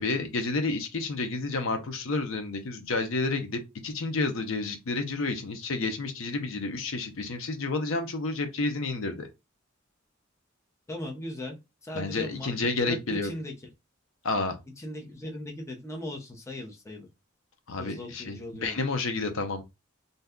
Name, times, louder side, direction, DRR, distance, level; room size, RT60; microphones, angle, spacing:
voice 1, 0.0-9.3 11.9-13.3 14.2-14.6 17.7-19.6, left 3 dB, 70° left, 0.6 m, -30 dB
voice 2, 10.9-11.6 11.8-12.5 12.8-13.5 14.8-17.1 17.8-18.8, left 1 dB, 15° left, 0.6 m, -38 dB
2.7 x 2.2 x 3.5 m
head